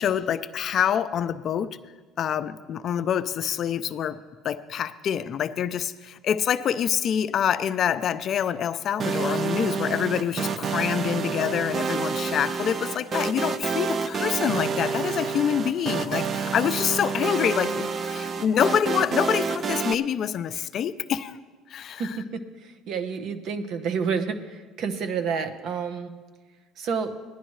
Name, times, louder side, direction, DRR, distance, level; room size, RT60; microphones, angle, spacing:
voice 1, 0.0-1.8 2.2-4.2 4.4-21.4 21.7-22.2, left 9 dB, 50° left, 12 dB, 0.5 m, -26 dB
sound 1, 9.0-19.9, right 5 dB, 40° right, 0.6 m, -28 dB
voice 2, 22.0-26.1 26.8-27.1, right 6 dB, 65° right, 9 dB, 1.0 m, -29 dB
18.0 x 11.0 x 3.2 m, 1.4 s
cardioid pair, 110°, 0 cm